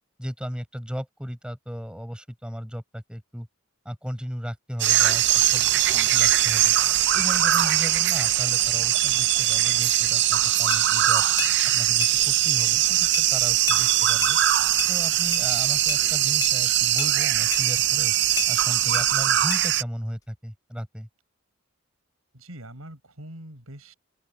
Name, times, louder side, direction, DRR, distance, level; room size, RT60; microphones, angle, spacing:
voice 1, 0.2-3.5 3.9-6.7 7.1-11.2 11.7-14.4 14.9-18.1 18.5-21.1, equal, 5° right, 5.2 m, -36 dB
sound 1, 4.8-19.8, right 13 dB, 55° right, 0.6 m, -21 dB
sound 2, 10.7-10.8 11.4-11.6 12.0-12.2 12.6-12.7 13.1-13.3 13.7-13.8 14.2-14.4 14.8-14.9 15.3-15.5 15.9-16.0 16.4-16.5 17.0-17.1 17.5-17.7 18.4-18.5 18.9-19.1 19.5-19.6, left 7 dB, 20° left, 1.7 m, -31 dB
voice 2, 22.3-23.9, right 1 dB, 80° right, 6.7 m, -43 dB
open air
head